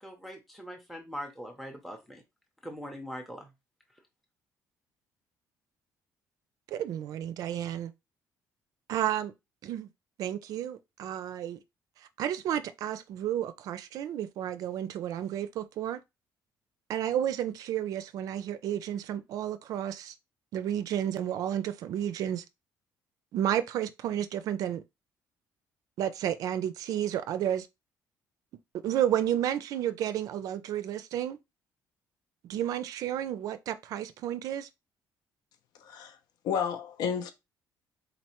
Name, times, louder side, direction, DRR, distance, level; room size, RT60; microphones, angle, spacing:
voice 1, 0.0-2.2 2.6-3.5, equal, ahead, 0.5 m, -41 dB
voice 2, 6.7-7.9 8.9-9.3 9.6-9.9 10.2-11.6 12.2-16.0 16.9-20.1 20.5-22.4 23.3-24.8 26.0-27.7 28.7-31.4 32.5-34.7, right 10 dB, 60° right, 0.4 m, -31 dB
voice 3, 35.8-36.2 36.4-37.3, left 7 dB, 80° left, 0.6 m, -31 dB
4.0 x 3.1 x 2.9 m
cardioid pair, 170°, 7 cm